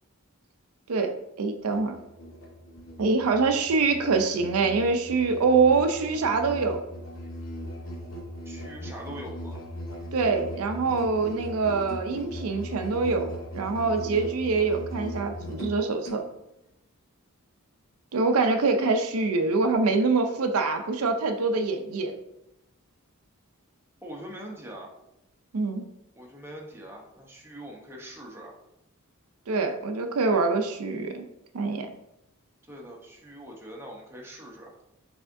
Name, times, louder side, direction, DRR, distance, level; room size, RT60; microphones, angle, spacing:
voice 1, 0.9-2.0 3.0-6.8 10.1-16.2 18.1-22.2 25.5-25.9 29.5-31.3 31.5-31.9, right 4 dB, 90° right, 6 dB, 0.5 m, -25 dB
Musical instrument, 1.6-16.2, equal, 65° left, 0.9 m, -39 dB
voice 2, 8.5-9.6 24.0-24.9 26.1-28.5 32.7-34.8, right 1 dB, 10° right, -2 dB, 0.8 m, -42 dB
5.6 x 3.5 x 2.6 m, 0.85 s
head